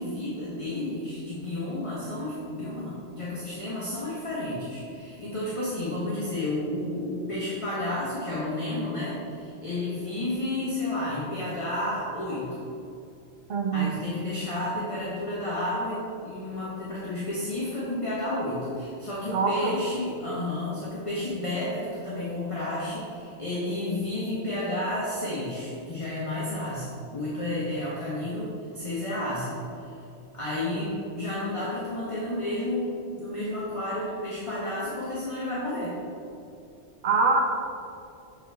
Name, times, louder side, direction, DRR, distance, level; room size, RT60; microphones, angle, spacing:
voice 1, 0.0-12.6 13.7-29.9 30.3-36.0, left 1 dB, 30° left, -8 dB, 1.0 m, -31 dB
voice 2, 13.5-13.9 19.3-19.7 37.0-37.4, right 4 dB, 55° right, 2 dB, 0.8 m, -24 dB
6.4 x 4.9 x 3.4 m, 2.6 s
omnidirectional pair, 1.2 m